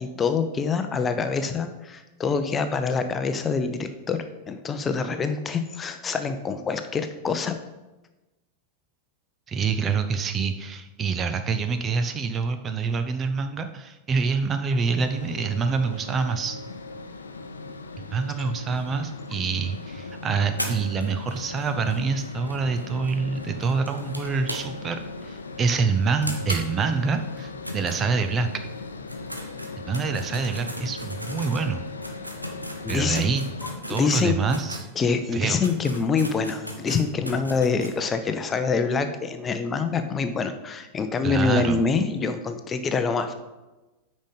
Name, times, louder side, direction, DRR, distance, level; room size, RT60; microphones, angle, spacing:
voice 1, 0.0-7.6 32.8-33.2 33.9-34.3 35.0-43.3, left 5 dB, 20° left, 8 dB, 0.7 m, -25 dB
voice 2, 9.5-16.6 18.1-28.5 29.8-31.8 32.9-33.4 33.9-34.9 35.3-35.7 41.2-41.8, right 5 dB, 25° right, 8 dB, 0.7 m, -26 dB
sound 1, 14.9-33.8, left 3 dB, 75° left, 0.7 m, -39 dB
sound 2, 20.6-25.0 25.3-25.4 25.7-25.8 26.2-28.5 29.0-34.9 35.3-35.4 35.6-38.0, equal, 90° right, 1.0 m, -37 dB
9.0 x 5.3 x 5.3 m, 1.1 s
figure-of-eight pair, 90°, 0 cm